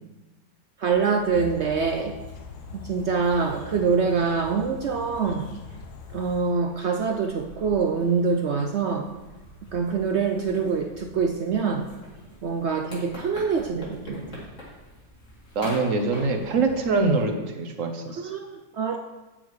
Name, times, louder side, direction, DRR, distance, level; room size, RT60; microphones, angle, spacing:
sound 1, 0.8-17.3, equal, 45° left, 3.2 m, -45 dB
voice 1, 0.8-2.1 2.7-5.5 6.1-9.1 9.7-11.9 12.4-14.2 18.2-19.0, right 5 dB, 75° right, 5 dB, 0.6 m, -25 dB
sound 2, 1.3-6.4, left 6 dB, 70° left, 1.3 m, -42 dB
voice 2, 15.5-18.3, right 3 dB, 55° right, 5 dB, 1.2 m, -24 dB
8.9 x 7.5 x 4.7 m, 1.1 s
omnidirectional pair, 1.9 m